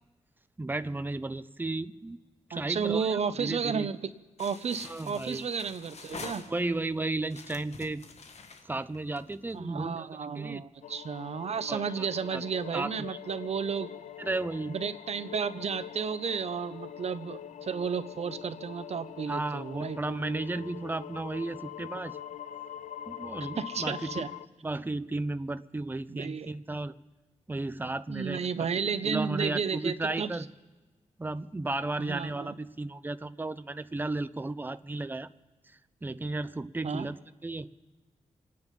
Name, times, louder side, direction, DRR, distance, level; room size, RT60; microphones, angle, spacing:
voice 1, 0.6-2.2 2.5-3.9 4.8-5.5 6.5-8.0 8.6-10.1 10.4-10.6 11.7-12.1 12.3-12.4 12.7-12.9 14.2-14.8 19.3-22.2 23.1-24.2 24.6-26.9 27.5-28.4 29.0-30.5 31.2-35.3 36.0-37.7, right 2 dB, 15° right, 13 dB, 0.6 m, -34 dB
voice 2, 2.5-4.0 4.4-6.5 9.5-13.9 14.7-20.0 23.6-24.3 26.1-26.5 28.1-30.3 32.0-32.5 36.8-37.1, right 6 dB, 60° right, 13 dB, 0.8 m, -32 dB
sound 1, 4.4-6.9 7.3-9.5, left 4 dB, 65° left, 1.5 m, -46 dB
sound 2, 10.8-24.5, left 10 dB, 80° left, 0.5 m, -43 dB
27.0 x 9.7 x 5.3 m, 1.2 s
wide cardioid pair, 100°, 12 cm